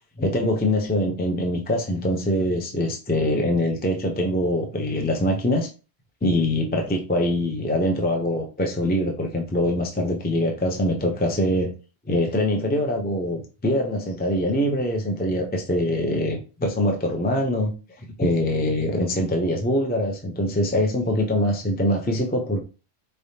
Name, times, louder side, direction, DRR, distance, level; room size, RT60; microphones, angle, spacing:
voice 1, 0.2-5.7 6.2-11.7 12.1-17.7 18.0-22.6, left 1 dB, 10° left, 0.5 m, -23 dB
4.5 x 3.4 x 2.7 m
omnidirectional pair, 1.1 m